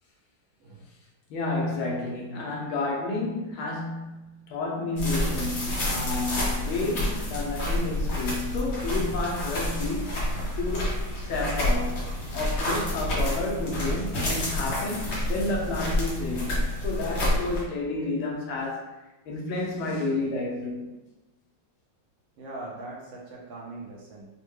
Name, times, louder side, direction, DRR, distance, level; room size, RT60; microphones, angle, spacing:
voice 1, 1.3-10.1 10.6-19.0 19.3-21.0, left 2 dB, 75° left, -2 dB, 1.5 m, -31 dB
sound 1, 5.0-17.6, left 1 dB, 55° left, 0.7 m, -29 dB
voice 2, 22.4-24.3, right 2 dB, 70° right, -3 dB, 1.3 m, -41 dB
4.2 x 2.1 x 3.0 m, 1.0 s
omnidirectional pair, 2.3 m